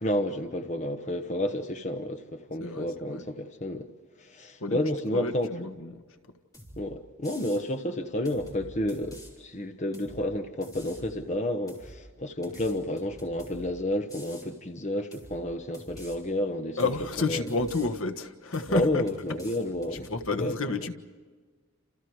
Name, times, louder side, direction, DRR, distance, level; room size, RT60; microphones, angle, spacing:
voice 1, 0.0-3.9 4.2-5.5 6.8-16.8 17.3-17.5 18.7-20.1 20.4-20.6, left 1 dB, 35° left, 1.2 m, -30 dB
voice 2, 2.6-3.2 4.6-4.8 5.1-6.4 16.8-19.0 19.9-20.9, left 3 dB, 70° left, 1.5 m, -31 dB
sound 1, 6.5-6.8 7.2-7.6 8.2-9.3 9.9-10.2 10.6-11.1 11.7-11.9 12.4-13.7 14.1-14.5 15.1-15.4 15.7-16.2 16.8-17.1 17.5-17.9 18.5-18.8 19.1-20.2, equal, 15° left, 5.0 m, -48 dB
29.5 x 28.0 x 4.8 m
head